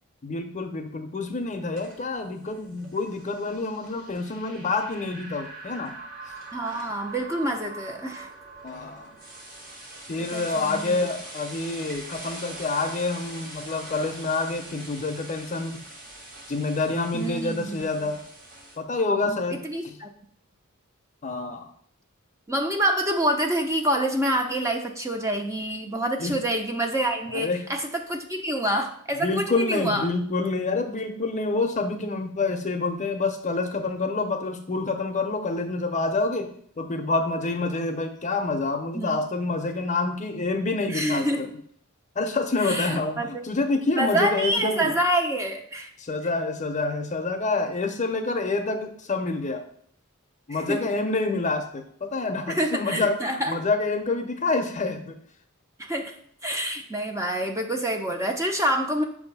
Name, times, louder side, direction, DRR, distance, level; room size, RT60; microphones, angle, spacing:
voice 1, 0.2-5.9 8.6-9.1 10.1-15.8 16.5-18.2 18.8-20.0 21.2-21.7 26.2-26.3 27.3-27.6 29.1-36.5 36.8-41.5 42.2-44.9 46.0-49.6 50.5-53.2 53.5-55.1, left 3 dB, 35° left, 5 dB, 0.6 m, -27 dB
sound 1, 1.4-18.8, right 2 dB, 40° right, 1.3 m, -43 dB
voice 2, 6.5-8.3 10.2-11.1 17.1-18.1 19.2-20.1 22.5-30.1 38.9-39.2 40.9-41.5 42.6-43.4 44.0-45.9 50.5-50.8 52.5-53.5 55.8-56.1 56.4-59.0, right 1 dB, 15° right, 3 dB, 0.6 m, -27 dB
6.6 x 2.6 x 5.4 m, 0.62 s
head